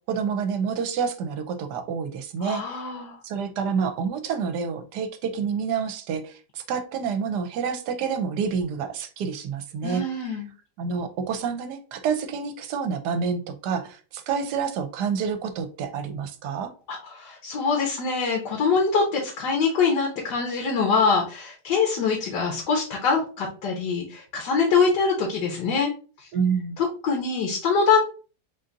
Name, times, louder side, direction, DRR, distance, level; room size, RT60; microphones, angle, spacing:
voice 1, 0.1-2.8 3.2-10.0 10.8-16.7 26.3-26.8, right 6 dB, 75° right, 9 dB, 1.2 m, -28 dB
voice 2, 2.4-3.2 9.8-10.5 16.9-25.9 26.2-26.3 26.8-28.0, left 5 dB, 70° left, 0 dB, 1.5 m, -24 dB
3.9 x 2.6 x 3.8 m, 0.37 s
omnidirectional pair, 1.9 m